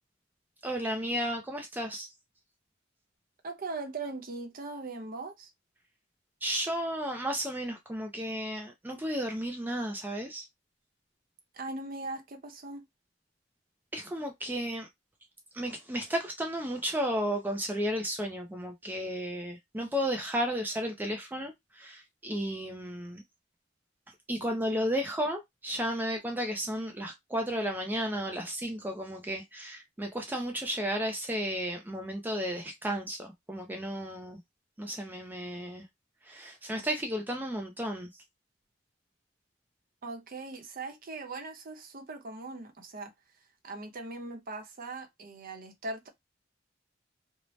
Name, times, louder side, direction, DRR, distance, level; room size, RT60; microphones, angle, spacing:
voice 1, 0.6-2.1 6.4-10.5 13.9-14.9 15.5-23.2 24.3-34.4 34.8-35.9 36.3-38.1, equal, 10° right, 0.4 m, -33 dB
voice 2, 3.4-5.5 11.5-12.9 40.0-43.1 43.6-46.1, right 3 dB, 50° right, 0.7 m, -40 dB
2.7 x 2.1 x 3.1 m
head